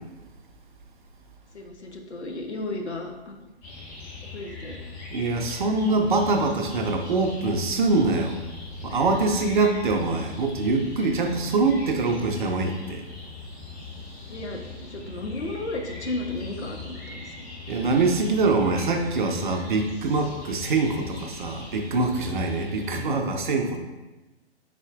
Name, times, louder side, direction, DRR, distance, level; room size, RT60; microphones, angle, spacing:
voice 1, 1.5-3.5 4.3-4.8 14.3-17.8, left 2 dB, 85° left, 3 dB, 0.7 m, -34 dB
sound 1, 3.6-23.0, left 4 dB, 25° left, 1.2 m, -40 dB
voice 2, 5.1-8.4 8.8-13.0 17.7-23.8, right 3 dB, 50° right, 4 dB, 0.5 m, -24 dB
4.2 x 4.1 x 2.4 m, 1.1 s
figure-of-eight pair, 120°, 33 cm